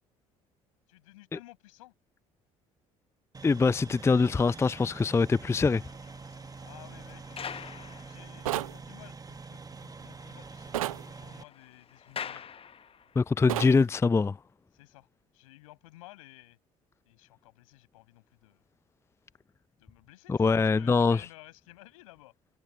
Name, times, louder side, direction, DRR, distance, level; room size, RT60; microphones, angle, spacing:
voice 1, 0.9-1.9 6.6-7.6 8.0-10.8 11.0-12.5 14.7-15.1 15.3-16.6 17.0-18.6 19.8-22.3, left 19 dB, 75° left, 5.7 m, -54 dB
sound 1, 3.3-11.4, right 4 dB, 20° right, 1.6 m, -45 dB
voice 2, 3.4-5.8 13.2-14.4 20.3-21.3, left 4 dB, 15° left, 0.5 m, -24 dB
sound 2, 5.3-8.9 9.2-9.3 9.7-9.8 10.1-13.3 14.0-14.2, left 7 dB, 30° left, 0.9 m, -46 dB
sound 3, 8.5-8.8 10.7-11.0 13.5-13.8, right 14 dB, 75° right, 0.8 m, -31 dB
figure-of-eight pair, 55°, 18 cm